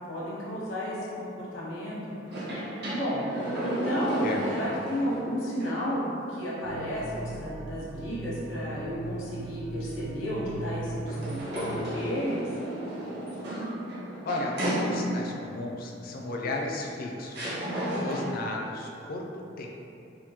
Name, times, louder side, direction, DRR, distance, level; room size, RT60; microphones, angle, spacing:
voice 1, 0.1-2.0 2.9-4.3 4.6-12.5, equal, 80° left, -7 dB, 0.9 m, -32 dB
sound 1, 2.2-5.2 5.6-5.7 11.1-15.4 16.5-16.6 17.3-18.5, equal, 60° right, 1.0 m, -33 dB
sound 2, 6.6-11.8, right 2 dB, 85° right, 0.3 m, -38 dB
voice 2, 14.2-17.5 17.9-19.7, left 2 dB, 50° left, 0 dB, 0.4 m, -34 dB
3.6 x 2.5 x 2.8 m, 2.7 s
head